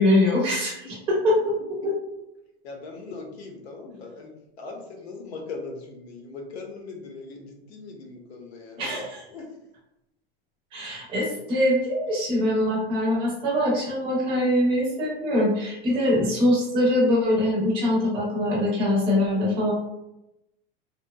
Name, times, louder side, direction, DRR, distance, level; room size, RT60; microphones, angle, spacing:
voice 1, 0.0-1.5 1.8-1.9 8.8-9.2 10.7-19.7, left 1 dB, 15° right, -5 dB, 0.5 m, -23 dB
voice 2, 2.6-4.3 4.6-9.0 9.3-9.5 10.8-10.9, left 3 dB, 90° left, 2 dB, 0.8 m, -40 dB
2.7 x 2.1 x 2.2 m, 0.88 s
supercardioid pair, 175°, 31 cm